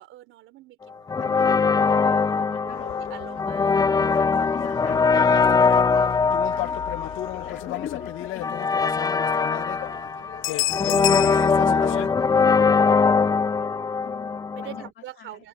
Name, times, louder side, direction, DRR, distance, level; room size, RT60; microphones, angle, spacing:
voice 1, 0.0-2.7 3.0-4.5 9.2-10.4 10.7-13.4 14.6-15.5, right 14 dB, 90° right, 3.9 m, -46 dB
sound 1, 1.1-14.9, left 5 dB, 20° left, 0.3 m, -22 dB
voice 2, 1.2-2.9 4.0-9.0 9.8-10.1 10.8-11.5 14.0-14.9 15.2-15.4, left 10 dB, 65° left, 2.1 m, -43 dB
sound 2, 2.7-12.1, left 17 dB, 85° left, 0.4 m, -32 dB
cardioid pair, 90°, 20 cm